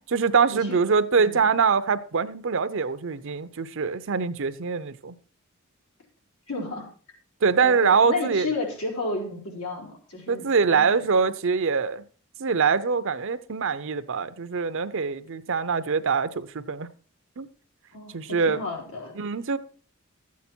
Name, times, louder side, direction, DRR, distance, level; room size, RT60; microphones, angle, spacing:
voice 1, 0.1-5.2 7.4-8.5 10.3-12.0 12.4-16.9 17.4-17.5 18.1-18.6 19.2-19.6, right 5 dB, 60° right, 0.7 m, -24 dB
voice 2, 1.2-1.5 6.5-6.9 7.6-11.0 17.9-19.1, left 2 dB, 85° left, 3.8 m, -32 dB
12.5 x 8.4 x 4.4 m
head